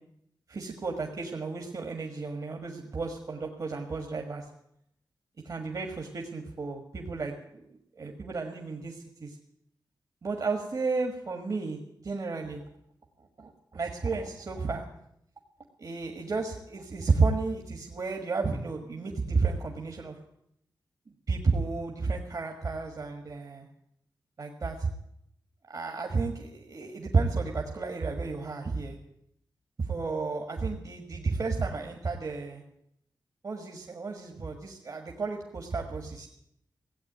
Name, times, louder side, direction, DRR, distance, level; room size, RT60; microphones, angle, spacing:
voice 1, 0.5-4.5 5.4-9.4 10.2-12.6 13.4-14.9 15.8-20.2 21.3-23.7 24.4-24.9 25.7-29.0 29.8-32.6 33.4-36.3, right 4 dB, 50° right, 2 dB, 1.6 m, -32 dB
17.0 x 8.3 x 9.2 m, 0.76 s
wide cardioid pair, 130°, 8 cm